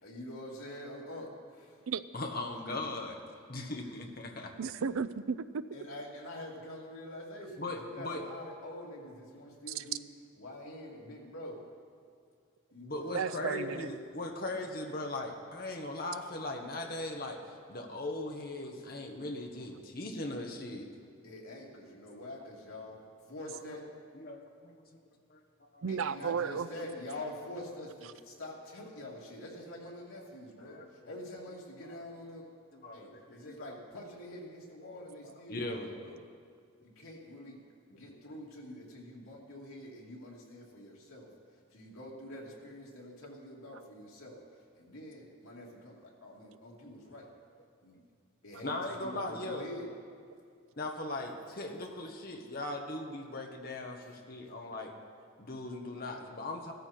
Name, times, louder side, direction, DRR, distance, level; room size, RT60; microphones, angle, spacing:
voice 1, 0.0-1.8 3.6-3.8 5.7-10.0 10.4-11.6 12.7-13.7 21.2-23.0 23.3-23.8 25.9-32.5 32.9-36.2 37.0-37.6 37.9-41.3 41.7-44.4 44.7-47.3 47.8-47.9 48.4-49.9, left 1 dB, 85° left, -2 dB, 2.7 m, -46 dB
voice 2, 2.1-3.2 3.5-4.5 7.6-8.2 12.8-17.4 17.7-20.9 24.1-24.8 25.7-25.8 26.8-27.0 30.6-31.1 31.9-32.0 32.7-33.7 35.2-35.9 48.6-49.7 50.8-54.9 55.4-56.7, left 2 dB, 45° left, 2 dB, 1.3 m, -39 dB
voice 3, 4.6-5.6 9.7-9.8 13.1-13.9 25.8-26.7, right 6 dB, 85° right, 14 dB, 0.5 m, -33 dB
16.0 x 13.5 x 4.5 m, 2.2 s
head